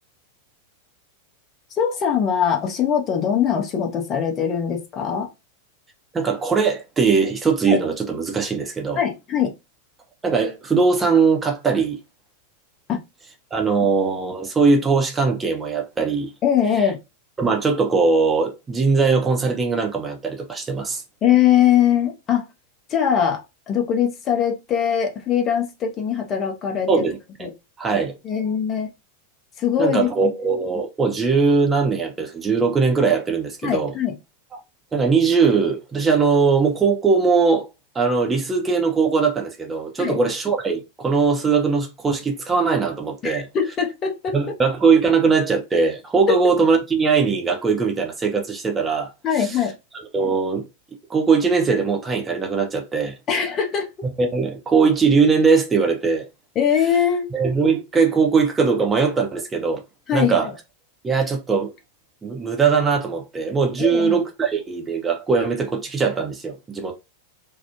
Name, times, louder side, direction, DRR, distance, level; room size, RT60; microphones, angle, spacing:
voice 1, 1.7-5.3 7.7-7.8 8.9-9.5 12.9-13.0 16.4-17.0 21.2-22.4 22.9-23.4 23.7-27.0 27.4-27.5 28.2-28.9 29.6-30.3 33.6-34.2 40.0-40.2 43.2-44.4 49.2-49.7 53.3-53.9 56.6-57.3 60.1-60.5 63.8-64.2, left 8 dB, 30° left, 0.6 m, -21 dB
voice 2, 6.1-9.0 10.2-12.0 13.5-16.3 17.4-21.0 26.9-27.2 27.8-28.1 29.8-33.9 34.5-34.6 34.9-37.7 37.9-43.5 44.3-49.1 49.4-49.6 50.1-50.7 51.1-53.1 54.2-56.3 57.3-59.8 60.1-60.5 61.0-61.7 62.2-66.9, right 5 dB, 15° right, 0.5 m, -20 dB
2.4 x 2.0 x 2.8 m
figure-of-eight pair, 90°, 0 cm